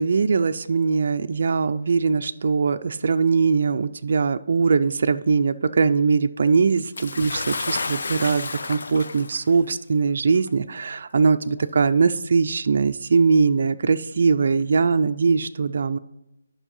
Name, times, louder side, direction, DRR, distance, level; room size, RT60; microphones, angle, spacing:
voice 1, 0.0-16.0, right 5 dB, 45° right, 9 dB, 0.4 m, -21 dB
Bathtub (filling or washing) / Splash splatter, 7.0-9.6 10.5-10.6 11.6-11.7, left 4 dB, 60° left, 0.5 m, -31 dB
9.9 x 5.4 x 5.4 m, 0.91 s
hypercardioid pair, 175°, 0 cm